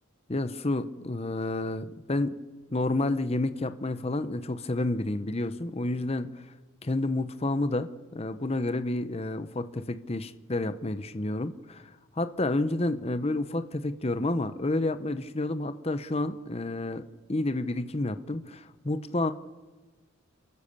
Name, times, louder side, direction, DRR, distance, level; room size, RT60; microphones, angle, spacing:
voice 1, 0.3-2.4 2.7-6.4 6.8-19.3, left 2 dB, 30° left, 11 dB, 0.8 m, -30 dB
28.5 x 14.0 x 6.8 m, 1.2 s
head